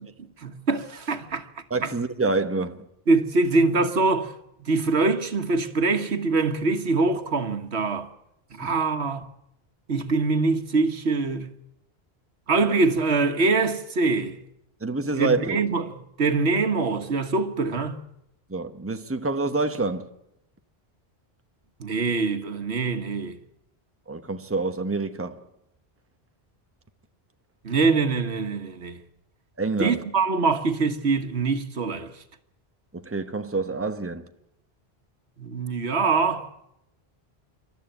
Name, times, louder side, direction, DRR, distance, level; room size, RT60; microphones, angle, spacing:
voice 1, 0.4-1.5 1.8-1.9 3.1-4.3 4.6-8.1 8.5-9.2 9.9-11.5 12.5-14.4 15.2-18.0 21.8-23.4 27.6-29.0 29.8-32.1 35.4-36.5, right 3 dB, 85° right, 1.7 m, -24 dB
voice 2, 1.7-2.9 8.6-8.7 14.8-15.6 18.5-20.1 24.1-25.4 29.6-30.0 32.9-34.3, right 3 dB, 15° right, 1.0 m, -27 dB
28.0 x 13.0 x 9.0 m
omnidirectional pair, 1.1 m